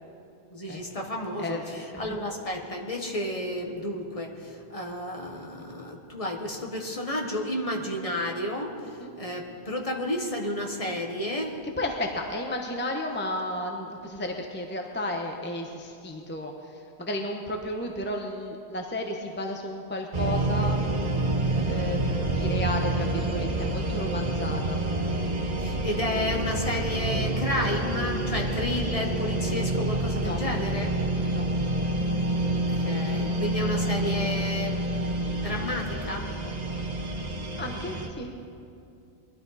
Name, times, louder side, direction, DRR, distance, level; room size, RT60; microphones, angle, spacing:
voice 1, 0.5-8.7 9.2-11.6 25.6-30.9 32.3-32.5 32.8-34.7 35.0-36.3, left 1 dB, 35° left, 1 dB, 1.3 m, -31 dB
voice 2, 1.4-2.2 9.0-9.1 11.8-20.8 21.7-24.8 30.1-30.4 31.3-31.5 37.6-38.3, left 1 dB, 10° left, 2 dB, 0.8 m, -33 dB
sound 1, 20.1-38.1, right 2 dB, 40° right, 1.1 m, -28 dB
21.0 x 12.0 x 4.1 m, 2.6 s
omnidirectional pair, 1.1 m